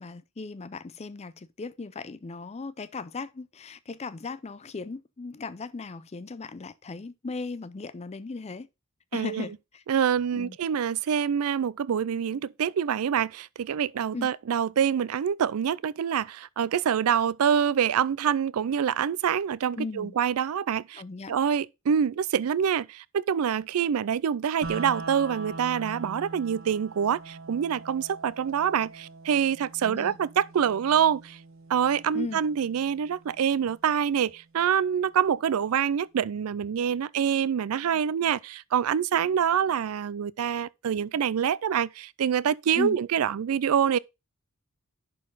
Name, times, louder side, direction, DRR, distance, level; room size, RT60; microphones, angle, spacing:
voice 1, 0.0-8.7 9.1-9.8 10.3-10.6 14.1-14.3 19.8-20.1 20.9-21.3 29.8-30.2 32.1-32.4 42.7-43.0, left 3 dB, 30° left, 0.5 m, -37 dB
voice 2, 9.1-9.5 9.9-21.0 21.3-31.4 31.7-44.0, right 8 dB, 85° right, 0.4 m, -26 dB
sound 1, 24.6-34.6, right 3 dB, 65° right, 1.1 m, -43 dB
11.0 x 4.0 x 3.9 m
head